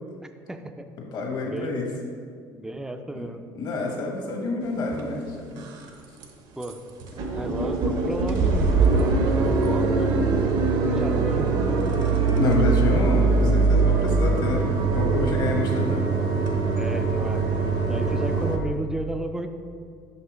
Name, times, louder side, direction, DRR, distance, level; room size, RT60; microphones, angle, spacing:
voice 1, 0.5-0.9 1.4-1.7 2.5-3.4 6.6-6.8 7.3-10.1 10.8-11.5 16.7-17.4 17.9-19.5, right 1 dB, 5° right, 7 dB, 0.4 m, -33 dB
voice 2, 1.1-1.9 3.1-3.3 3.6-5.7 12.4-16.1 17.3-17.4, left 3 dB, 55° left, 1 dB, 1.1 m, -28 dB
sound 1, 4.9-5.0 5.5-5.9 6.2-6.3 6.6-6.7 7.0-18.6, right 4 dB, 60° right, 0.7 m, -22 dB
5.8 x 5.5 x 3.0 m, 2.2 s
supercardioid pair, 100°, 9 cm